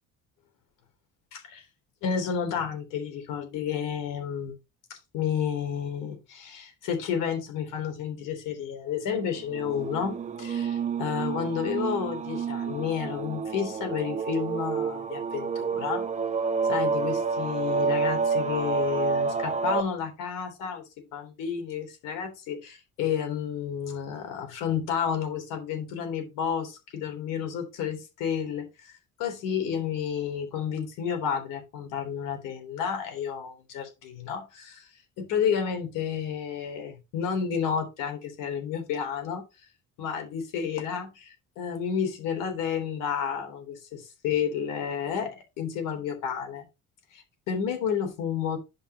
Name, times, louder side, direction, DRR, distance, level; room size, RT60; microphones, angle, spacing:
voice 1, 1.3-1.6 2.0-4.6 4.9-16.1 16.7-28.9 29.2-34.9 35.2-39.4 40.0-46.7 47.1-48.6, left 7 dB, 90° left, 3.6 m, -31 dB
sound 1, 9.5-19.8, right 5 dB, 25° right, 0.6 m, -29 dB
10.5 x 4.3 x 4.1 m
cardioid pair, 155°, 31 cm